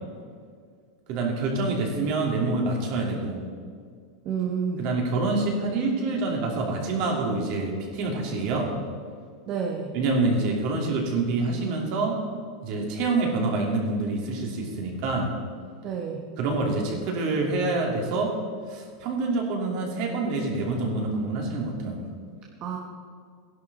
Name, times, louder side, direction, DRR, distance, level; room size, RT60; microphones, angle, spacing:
voice 1, 1.1-3.4 4.8-8.7 9.9-12.2 12.6-15.3 16.4-18.3 18.7-22.1, right 3 dB, 45° right, -1 dB, 3.0 m, -26 dB
voice 2, 4.3-4.8 9.5-9.9 15.8-16.2 22.6-22.8, right 6 dB, 30° right, 0 dB, 1.2 m, -29 dB
16.0 x 11.0 x 4.3 m, 2.1 s
supercardioid pair, 160°, 3 cm